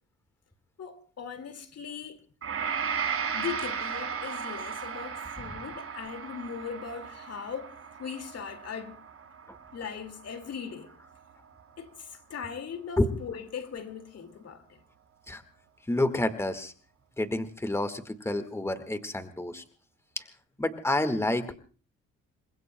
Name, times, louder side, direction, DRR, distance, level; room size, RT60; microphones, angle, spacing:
voice 1, 0.8-2.2 3.3-9.0 9.7-11.0 11.8-14.8, left 7 dB, 55° left, 2.2 m, -39 dB
Gong, 2.4-10.8 11.2-11.3, right 6 dB, 50° right, 7.8 m, -36 dB
voice 2, 15.9-16.7 17.2-19.6 20.2-20.3 20.6-21.5, left 1 dB, 10° left, 1.7 m, -29 dB
28.5 x 22.0 x 2.2 m
cardioid pair, 90°, 30 cm